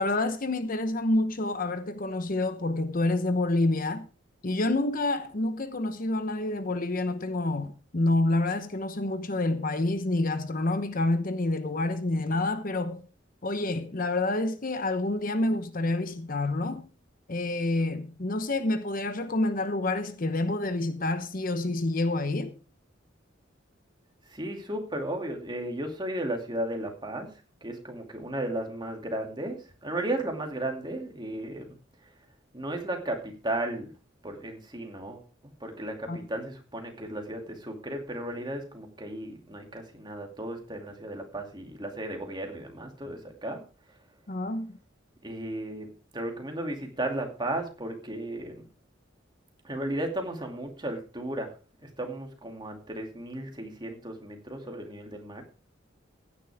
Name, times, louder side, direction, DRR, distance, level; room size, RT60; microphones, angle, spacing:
voice 1, 0.0-4.1 4.4-13.0 13.4-16.9 17.3-22.5 36.1-36.3 44.3-44.8, left 2 dB, 45° left, 1.0 m, -28 dB
voice 2, 24.3-27.3 27.6-31.8 32.5-33.9 34.2-43.6 45.2-48.7 49.6-51.5 52.0-55.4, right 1 dB, 25° right, 2.5 m, -35 dB
16.0 x 10.0 x 3.5 m
head